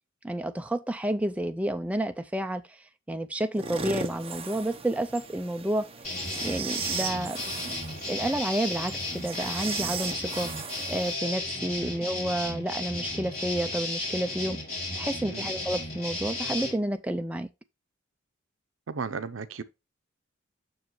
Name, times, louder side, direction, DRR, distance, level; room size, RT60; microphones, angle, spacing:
voice 1, 0.2-2.6 3.1-5.9 6.4-7.4 7.6-7.8 8.1-10.5 10.9-14.6 15.0-17.5, right 1 dB, 5° right, 0.3 m, -30 dB
sound 1, 3.5-11.1, right 5 dB, 30° right, 0.7 m, -37 dB
sound 2, 6.0-16.7, left 2 dB, 50° left, 4.6 m, -34 dB
voice 2, 18.9-19.6, right 5 dB, 70° right, 0.6 m, -35 dB
7.0 x 6.3 x 3.1 m
head